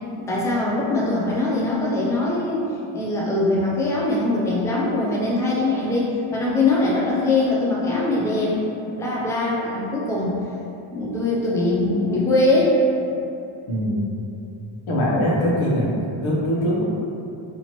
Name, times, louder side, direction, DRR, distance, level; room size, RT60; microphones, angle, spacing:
voice 1, 0.2-10.4 10.9-12.8, left 2 dB, 5° left, -5 dB, 0.5 m, -22 dB
voice 2, 13.7-14.1 14.9-15.9 16.2-16.8, equal, 75° left, -6 dB, 1.1 m, -21 dB
2.9 x 2.9 x 4.3 m, 2.7 s
cardioid pair, 120°, 50 cm